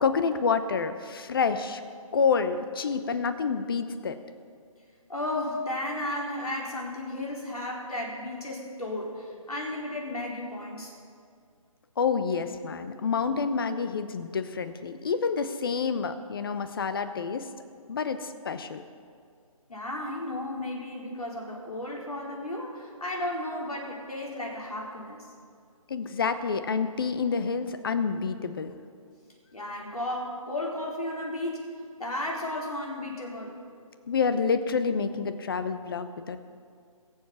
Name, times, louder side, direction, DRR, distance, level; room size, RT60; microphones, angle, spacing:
voice 1, 0.0-1.8 2.1-4.2 12.0-17.5 17.9-18.8 25.9-28.7 34.1-36.4, left 5 dB, 40° left, 10 dB, 0.9 m, -28 dB
voice 2, 5.1-10.9 19.7-25.2 29.5-31.6 32.0-33.6, left 1 dB, 90° left, -3 dB, 4.4 m, -34 dB
22.0 x 7.4 x 5.8 m, 2.2 s
figure-of-eight pair, 155°, 19 cm